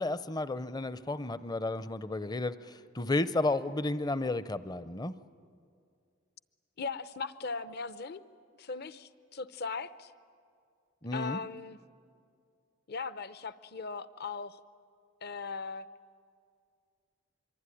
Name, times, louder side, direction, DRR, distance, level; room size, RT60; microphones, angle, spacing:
voice 1, 0.0-5.1 11.0-11.4, left 2 dB, 20° left, 14 dB, 0.6 m, -32 dB
voice 2, 6.8-8.2 8.6-10.1 11.1-11.8 12.9-14.6 15.2-15.9, left 4 dB, 50° left, 14 dB, 0.8 m, -38 dB
24.5 x 24.5 x 9.9 m, 2.3 s
head